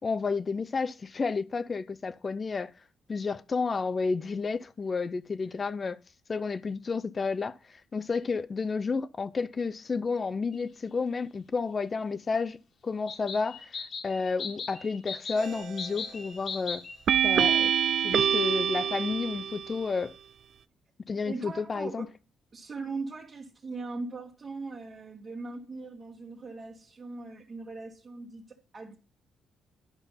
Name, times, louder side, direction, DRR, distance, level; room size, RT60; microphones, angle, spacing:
voice 1, 0.0-2.7 3.1-6.0 6.3-12.6 12.8-13.8 14.0-16.8 17.2-17.7 18.0-20.1 21.1-22.1, left 4 dB, 35° left, 0.6 m, -31 dB
sound 1, 10.5-10.6 13.1-17.0, left 5 dB, 55° left, 1.6 m, -39 dB
sound 2, 15.4-15.9 17.1-19.8, right 9 dB, 60° right, 0.4 m, -26 dB
voice 2, 21.2-22.1 22.5-29.0, right 3 dB, 35° right, 1.5 m, -40 dB
10.5 x 5.4 x 5.6 m
cardioid pair, 90°, 0 cm